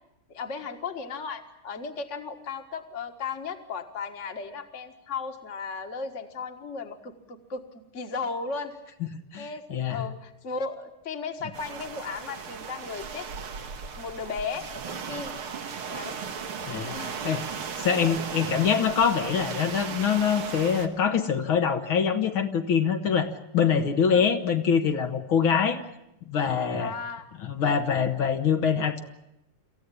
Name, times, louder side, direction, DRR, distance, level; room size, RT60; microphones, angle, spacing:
voice 1, 0.3-7.6 7.9-8.7 9.4-13.3 14.0-15.4 15.9-16.2 16.9-17.2 18.0-18.1 24.1-24.3 25.4-25.5 26.8-27.3, left 5 dB, 40° left, 6 dB, 1.8 m, -35 dB
voice 2, 9.3-10.1 16.6-16.9 17.2-17.4 17.8-25.8 26.3-26.9 27.4-29.0, left 7 dB, 75° left, 6 dB, 2.2 m, -24 dB
sound 1, 11.5-20.9, right 6 dB, 90° right, 2.4 m, -36 dB
27.0 x 15.0 x 9.9 m, 0.85 s
omnidirectional pair, 2.3 m